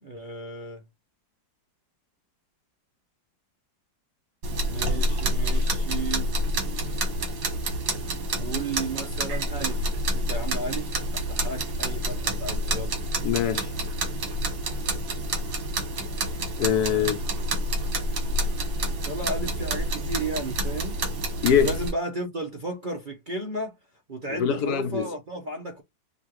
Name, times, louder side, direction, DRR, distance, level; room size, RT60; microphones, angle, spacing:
voice 1, 0.0-0.8 4.7-6.3 8.3-9.8 10.1-13.0 19.0-21.0 21.5-23.8 24.1-25.8, right 2 dB, 50° right, 0.5 m, -34 dB
sound 1, 4.4-21.9, right 1 dB, 80° right, 2.3 m, -28 dB
voice 2, 13.2-13.7 16.6-17.2 21.4-21.7 24.4-25.1, left 8 dB, 70° left, 1.0 m, -23 dB
6.4 x 2.4 x 3.0 m
omnidirectional pair, 2.1 m